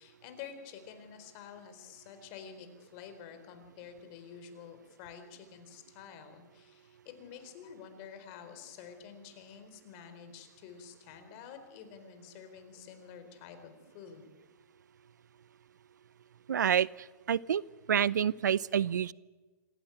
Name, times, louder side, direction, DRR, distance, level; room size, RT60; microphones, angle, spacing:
voice 1, 0.0-14.3, left 7 dB, 45° left, 8 dB, 4.3 m, -49 dB
voice 2, 16.5-16.9 17.3-17.6 17.9-19.1, right 8 dB, 85° right, 22 dB, 0.6 m, -27 dB
26.0 x 15.5 x 8.8 m, 1.3 s
hypercardioid pair, 130°, 9 cm